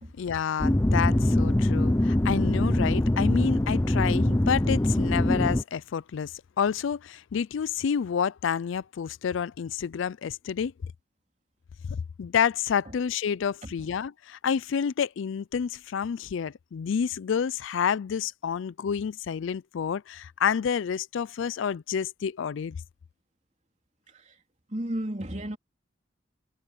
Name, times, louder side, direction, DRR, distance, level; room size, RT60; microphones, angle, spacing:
voice 1, 0.2-10.7 11.9-22.8, left 7 dB, 75° left, 0.4 m, -29 dB
sound 1, 0.6-5.6, left 1 dB, 15° left, 0.5 m, -23 dB
voice 2, 24.1-24.4 24.7-25.6, right 1 dB, 35° right, 3.7 m, -34 dB
head